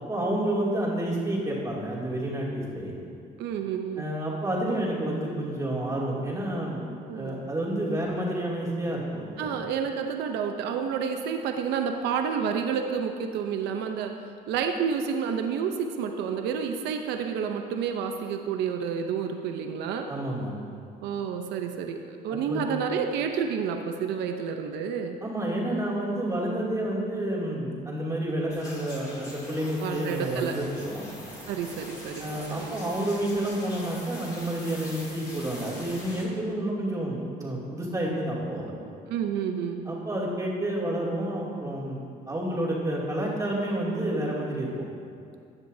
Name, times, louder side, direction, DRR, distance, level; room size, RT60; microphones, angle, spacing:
voice 1, 0.1-2.9 4.0-9.5 20.1-20.5 22.3-22.6 25.2-31.1 32.2-38.7 39.9-44.7, right 1 dB, 20° right, -5 dB, 2.7 m, -29 dB
voice 2, 3.4-4.1 7.1-7.5 9.4-14.1 14.5-20.1 21.0-25.2 29.8-30.6 31.5-32.8 38.8-39.9, right 7 dB, 80° right, 5 dB, 0.7 m, -30 dB
sound 1, 28.5-36.2, left 1 dB, 20° left, 2.7 m, -43 dB
15.5 x 9.8 x 2.8 m, 2.4 s
cardioid pair, 110°, 17 cm